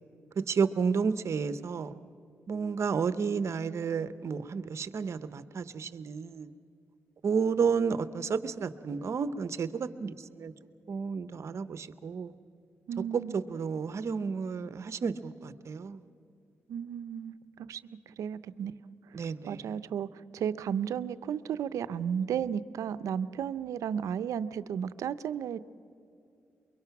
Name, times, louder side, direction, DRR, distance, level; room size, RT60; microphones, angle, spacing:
voice 1, 0.4-1.9 2.5-6.5 7.2-10.5 10.9-12.3 13.1-16.0 19.1-19.6, right 5 dB, 60° right, 0.8 m, -31 dB
voice 2, 12.9-13.4 16.7-18.7 19.4-25.6, right 8 dB, 90° right, 0.5 m, -34 dB
23.5 x 22.5 x 5.9 m
cardioid pair, 80°, 5 cm